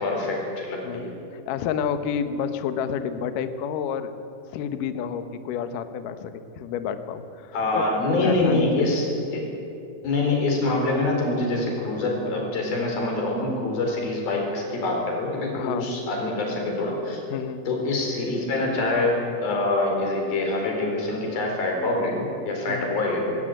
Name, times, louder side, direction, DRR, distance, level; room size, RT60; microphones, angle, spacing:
voice 1, 0.0-1.2 7.5-9.5 10.0-17.2 17.7-19.1 19.4-23.4, left 2 dB, 50° left, 1 dB, 5.6 m, -25 dB
voice 2, 0.8-4.1 4.5-7.9 8.2-8.7 15.5-15.9 17.3-17.6 22.7-22.9, left 7 dB, 80° left, 9 dB, 1.9 m, -30 dB
20.0 x 17.0 x 8.9 m, 2.6 s
omnidirectional pair, 5.5 m